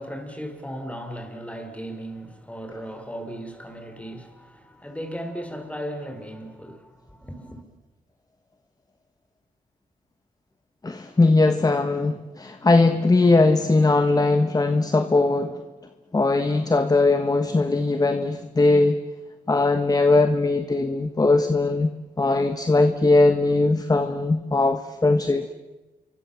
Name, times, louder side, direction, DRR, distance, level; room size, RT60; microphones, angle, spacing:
voice 1, 0.0-7.6, equal, 10° left, 5.1 m, -36 dB
voice 2, 10.8-15.5 16.1-19.0 19.5-21.9 22.2-25.5, left 3 dB, 25° left, 1.4 m, -20 dB
28.0 x 24.0 x 7.3 m
cardioid pair, 90°, 16 cm